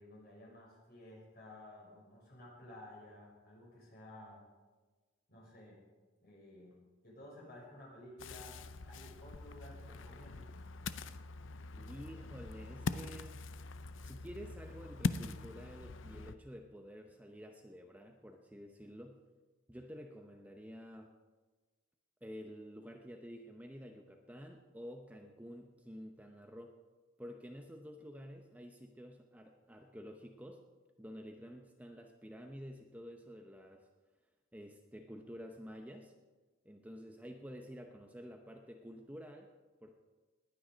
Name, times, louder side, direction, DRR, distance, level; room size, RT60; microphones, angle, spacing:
voice 1, 0.0-4.4 5.3-5.8 6.2-6.7 7.0-8.6 8.8-10.5, left 1 dB, 50° left, -3 dB, 5.8 m, -54 dB
Ocean, 8.2-16.4, left 3 dB, 70° left, 0.6 m, -42 dB
voice 2, 11.8-13.4 14.0-19.2 19.7-21.1 22.2-26.7 27.2-30.6 31.0-33.9 34.5-36.1 36.6-39.5 39.8-40.0, equal, 10° right, 3 dB, 0.7 m, -50 dB
20.0 x 9.3 x 5.1 m, 1.3 s
head